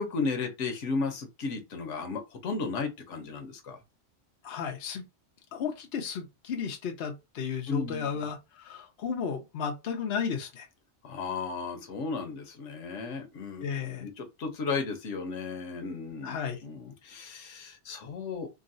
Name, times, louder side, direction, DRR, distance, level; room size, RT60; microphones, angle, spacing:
voice 1, 0.0-3.8 7.7-8.2 11.0-16.4 16.6-18.5, left 4 dB, 90° left, 1.1 m, -34 dB
voice 2, 4.4-5.0 5.5-10.7 13.6-14.1 16.2-16.7, left 6 dB, 65° left, 0.9 m, -34 dB
3.7 x 2.0 x 2.6 m
omnidirectional pair, 1.2 m